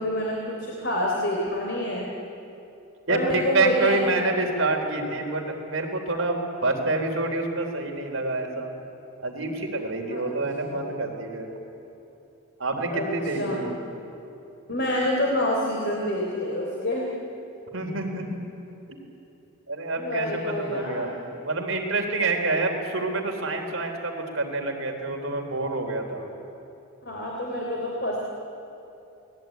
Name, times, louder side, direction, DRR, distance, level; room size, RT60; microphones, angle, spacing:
voice 1, 0.0-2.1 3.1-4.1 10.1-10.2 10.6-10.8 12.9-13.6 14.7-17.1 19.9-21.1 27.1-28.2, left 1 dB, 55° left, -2 dB, 3.5 m, -27 dB
voice 2, 3.1-8.7 9.2-11.5 12.6-13.9 17.7-18.3 18.9-19.0 19.7-26.2, right 2 dB, 70° right, 2 dB, 3.6 m, -27 dB
28.5 x 19.5 x 9.3 m, 2.8 s
head